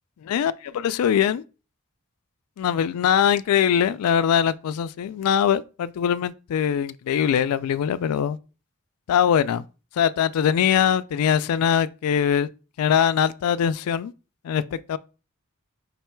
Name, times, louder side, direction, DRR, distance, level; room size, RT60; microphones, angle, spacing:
voice 1, 0.2-1.4 2.6-8.4 9.1-9.6 10.0-12.5 12.8-14.1 14.4-15.0, left 8 dB, 80° left, 0.3 m, -22 dB
5.3 x 2.2 x 4.3 m
head